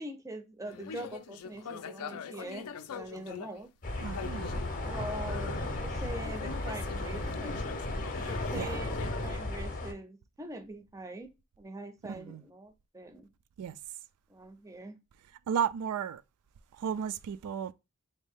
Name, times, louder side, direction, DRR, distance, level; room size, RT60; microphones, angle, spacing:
voice 1, 0.0-3.7 4.9-7.7 8.3-13.3 14.3-15.0, right 2 dB, 15° right, 0.5 m, -43 dB
sound 1, 0.6-3.6 4.0-5.7 6.0-9.4, left 6 dB, 75° left, 0.4 m, -44 dB
sound 2, 3.8-9.9, left 2 dB, 35° left, 0.6 m, -35 dB
voice 2, 4.0-4.5 8.5-8.8 12.1-12.4 13.6-13.8 15.5-16.2 16.8-17.7, right 8 dB, 80° right, 0.3 m, -33 dB
4.0 x 2.7 x 3.5 m
head